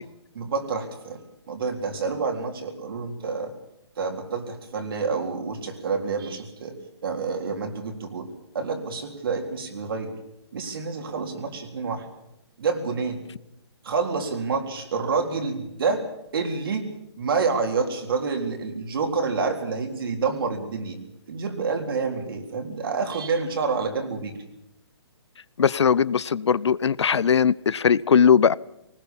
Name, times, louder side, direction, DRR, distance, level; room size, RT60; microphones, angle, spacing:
voice 1, 0.3-3.5 4.0-6.8 7.0-8.3 8.5-10.1 10.5-12.1 12.6-13.2 13.8-16.0 16.3-16.9 17.2-21.0 21.3-24.4, right 4 dB, 55° right, 4 dB, 3.9 m, -28 dB
voice 2, 25.6-28.5, left 7 dB, 80° left, 22 dB, 0.7 m, -19 dB
20.0 x 19.5 x 7.3 m, 0.85 s
hypercardioid pair, 165°, 14 cm